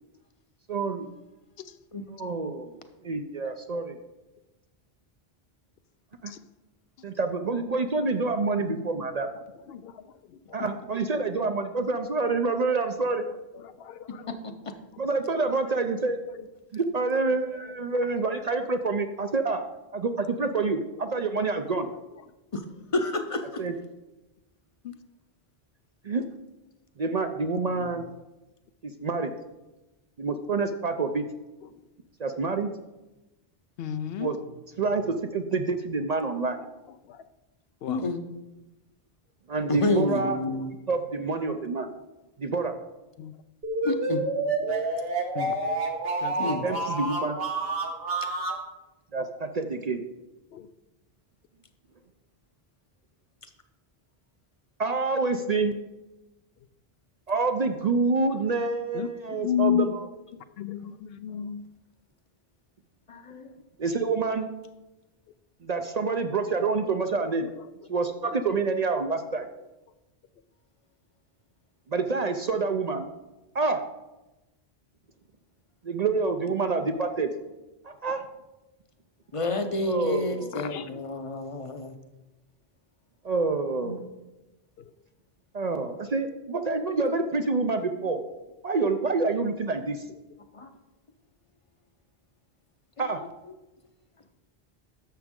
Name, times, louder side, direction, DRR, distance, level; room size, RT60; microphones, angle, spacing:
voice 1, 0.7-1.1 2.1-4.0 6.2-6.3 7.0-9.3 10.5-13.3 15.0-16.5 16.7-19.6 19.9-21.9 23.6-23.7 26.0-26.2 27.0-28.1 28.8-29.3 30.2-31.2 32.2-32.7 34.2-34.4 34.8-36.6 39.5-40.4 40.9-41.9 42.4-42.7 46.4-47.4 49.1-50.0 54.8-55.8 57.3-60.2 63.8-64.5 65.6-67.5 67.9-69.5 71.9-73.1 73.5-73.8 75.8-77.3 77.8-78.2 79.8-80.5 83.2-84.1 85.5-88.2 88.6-90.0 93.0-93.2, right 3 dB, 50° right, 6 dB, 0.6 m, -27 dB
voice 2, 13.8-14.2 27.8-27.9 33.8-34.3 37.8-38.0 43.2-43.3 45.4-45.5 46.2-46.7 50.5-50.7 58.9-59.1 59.4-59.9 60.6-60.9 61.2-61.6 80.5-80.9, left 9 dB, 75° left, 11 dB, 0.8 m, -30 dB
voice 3, 22.9-23.6 37.9-38.2 39.7-40.7 43.8-44.2 46.4-46.6 63.1-63.5 79.3-81.9 83.8-84.0 90.5-90.7 93.0-93.1, left 2 dB, 35° left, 7 dB, 0.7 m, -29 dB
sound 1, 43.6-48.6, right 2 dB, 70° right, 1.5 m, -29 dB
11.5 x 7.1 x 3.7 m, 1.1 s
omnidirectional pair, 1.0 m